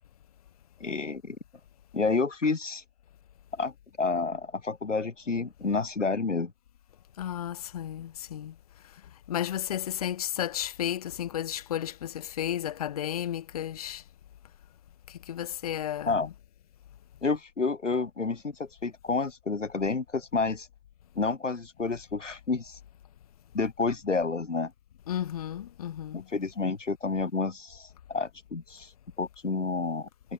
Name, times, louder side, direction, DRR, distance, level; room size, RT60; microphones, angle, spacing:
voice 1, 0.8-1.4 1.9-2.8 3.5-6.5 16.1-16.3 17.2-20.7 21.2-22.8 23.5-24.7 26.1-28.9 29.2-30.1, left 4 dB, 75° left, 3.7 m, -29 dB
voice 2, 7.2-8.5 9.3-14.0 15.3-16.2 25.1-26.2, left 11 dB, 30° left, 1.9 m, -33 dB
figure-of-eight pair, 150°, 37 cm